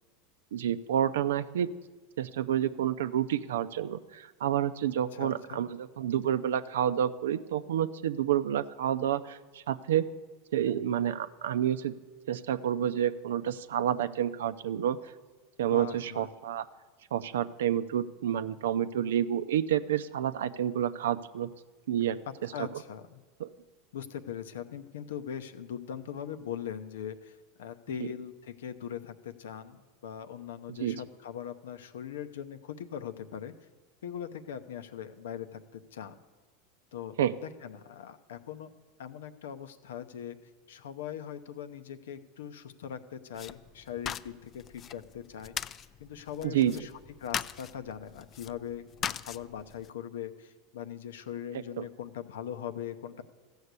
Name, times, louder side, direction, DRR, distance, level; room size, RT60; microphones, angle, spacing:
voice 1, 0.5-1.7 2.2-10.1 10.5-11.9 12.3-15.0 15.6-16.6 17.1-21.5 21.9-22.2 23.4-23.5 30.8-31.0 37.2-37.3 46.4-46.7 51.8-51.9, right 10 dB, 85° right, 12 dB, 0.5 m, -29 dB
voice 2, 5.1-5.6 15.6-16.3 22.3-23.2 23.9-33.5 34.0-36.2 36.9-38.7 39.0-40.4 40.7-45.6 46.0-46.9 47.2-53.2, left 9 dB, 85° left, 11 dB, 0.7 m, -41 dB
sound 1, 43.3-49.9, left 8 dB, 35° left, 0.3 m, -40 dB
14.5 x 6.5 x 8.2 m, 1.3 s
hypercardioid pair, 110°, 0 cm